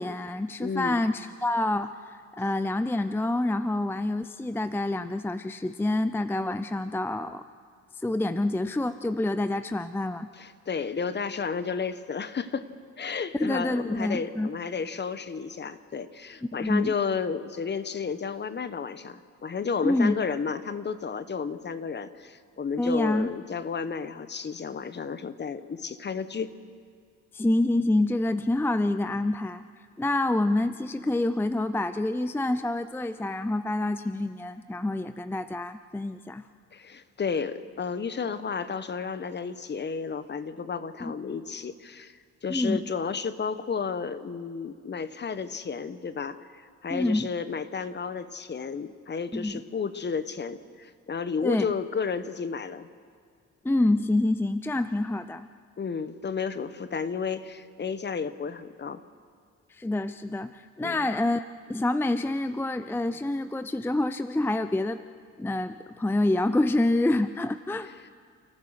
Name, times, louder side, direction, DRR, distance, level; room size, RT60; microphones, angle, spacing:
voice 1, 0.0-7.5 8.0-10.3 13.3-14.5 16.5-16.9 19.8-20.2 22.8-23.3 27.3-29.7 30.0-36.4 41.0-41.1 42.5-42.9 46.9-47.3 49.3-49.6 51.4-51.7 53.6-55.5 59.7-65.0 65.4-67.9, left 2 dB, 5° left, 12 dB, 0.5 m, -27 dB
voice 2, 0.6-1.0 10.4-12.7 13.0-26.5 36.7-52.9 55.8-59.0 60.8-61.1 68.0-68.1, left 5 dB, 35° left, 13 dB, 1.1 m, -32 dB
30.0 x 14.5 x 6.6 m, 2.2 s
cardioid pair, 90°, 30 cm